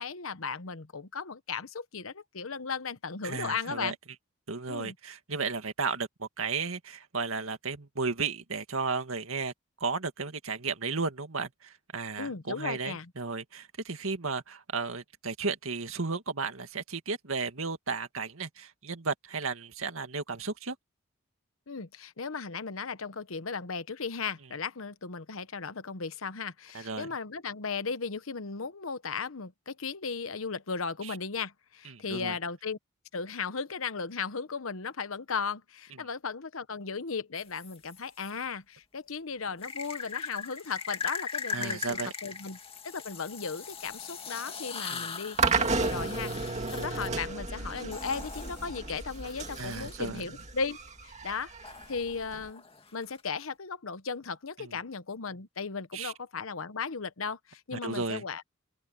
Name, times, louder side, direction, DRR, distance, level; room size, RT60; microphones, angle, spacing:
voice 1, 0.0-4.0 4.7-4.9 12.2-13.1 21.7-32.8 33.1-42.6 42.8-50.8 51.0-51.5 51.9-52.6 52.9-58.4, left 5 dB, 85° left, 1.0 m, -36 dB
voice 2, 3.2-3.9 4.5-9.5 9.8-20.8 26.7-27.1 31.0-31.2 31.9-32.4 41.5-42.1 44.9-45.1 49.6-50.2 54.6-54.8 55.9-56.1 57.7-58.2, right 4 dB, 90° right, 2.0 m, -34 dB
sound 1, 37.3-38.3 39.6-50.2 51.6-53.4, left 6 dB, 30° left, 2.1 m, -40 dB
sound 2, 45.4-52.5, right 4 dB, 35° right, 2.3 m, -33 dB
open air
head